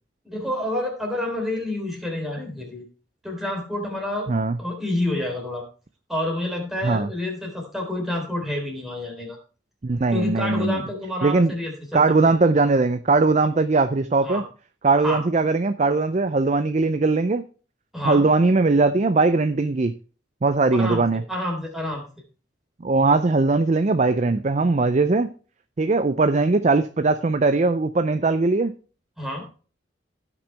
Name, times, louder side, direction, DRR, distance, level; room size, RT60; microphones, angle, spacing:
voice 1, 0.3-2.8 3.2-4.3 4.6-5.6 6.1-9.4 10.1-12.0 14.2-14.4 15.0-15.2 17.9-18.3 20.7-22.0 29.2-29.5, left 1 dB, ahead, -1 dB, 3.5 m, -28 dB
voice 2, 4.3-4.6 6.8-7.1 9.8-10.8 11.2-11.5 11.9-14.4 14.8-17.4 18.0-19.9 20.4-21.2 22.8-25.3 25.8-28.7, right 3 dB, 40° right, 11 dB, 0.5 m, -20 dB
16.5 x 6.0 x 3.4 m, 0.37 s
head